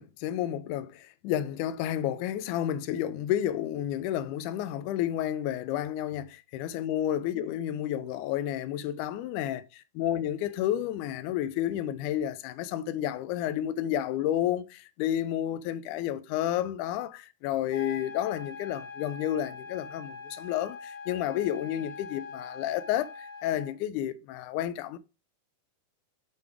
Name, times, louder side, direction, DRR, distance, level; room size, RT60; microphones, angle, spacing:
voice 1, 0.0-25.0, left 11 dB, 85° left, 1.8 m, -31 dB
sound 1, 17.7-23.7, left 5 dB, 30° left, 1.4 m, -43 dB
6.9 x 3.5 x 4.7 m
omnidirectional pair, 4.1 m